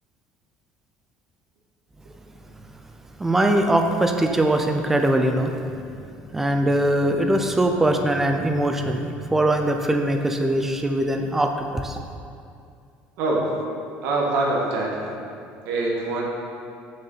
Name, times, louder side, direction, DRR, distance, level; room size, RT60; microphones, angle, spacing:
voice 1, 3.2-5.5 6.3-12.0, right 1 dB, 10° right, 4 dB, 0.5 m, -21 dB
voice 2, 14.0-15.2 15.7-16.2, right 2 dB, 70° right, -3 dB, 1.8 m, -24 dB
6.9 x 6.3 x 5.8 m, 2.4 s
cardioid pair, 180°, 4 cm